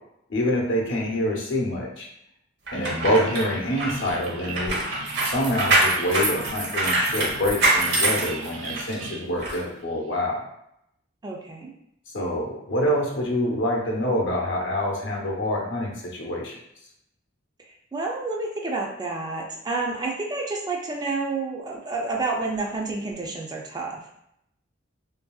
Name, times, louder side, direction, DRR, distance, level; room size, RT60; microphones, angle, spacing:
voice 1, 0.3-2.1 2.7-4.8 5.3-10.4 12.1-16.5, left 1 dB, 65° left, -1 dB, 0.7 m, -26 dB
voice 2, 2.7-3.1 11.2-11.7 17.7-24.0, right 3 dB, 20° right, -1 dB, 0.3 m, -30 dB
sound 1, 2.7-8.9 9.4-9.6, right 2 dB, 55° right, 0.8 m, -24 dB
sound 2, 2.7-10.2, right 4 dB, 90° right, 0.4 m, -39 dB
2.7 x 2.6 x 2.3 m, 0.77 s
head